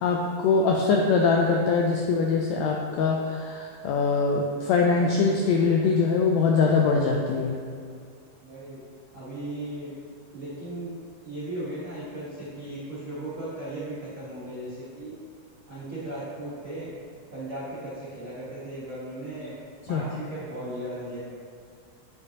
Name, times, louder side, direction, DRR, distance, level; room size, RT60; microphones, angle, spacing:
voice 1, 0.0-7.6 19.9-20.0, left 4 dB, 80° left, 0 dB, 1.6 m, -23 dB
voice 2, 8.4-8.8 9.1-9.9 10.3-10.9 11.2-15.1 15.7-16.9 17.3-19.6 19.9-21.2, right 1 dB, 60° right, -11 dB, 0.8 m, -36 dB
8.2 x 5.2 x 2.8 m, 2.1 s
omnidirectional pair, 3.4 m